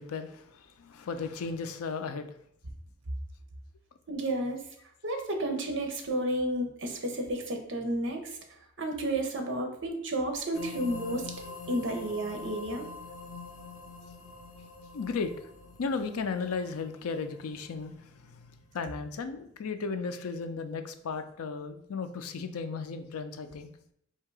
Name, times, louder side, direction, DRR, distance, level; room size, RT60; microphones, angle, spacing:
voice 1, 0.0-2.3 14.9-15.3 15.8-18.5 18.7-23.7, left 4 dB, 90° left, 9 dB, 0.5 m, -35 dB
voice 2, 4.1-4.6 5.0-8.4 8.8-11.3 11.7-12.9, right 1 dB, 55° right, 4 dB, 0.8 m, -31 dB
sound 1, 10.5-18.3, left 4 dB, 70° left, 1.0 m, -45 dB
3.6 x 2.8 x 4.6 m, 0.69 s
head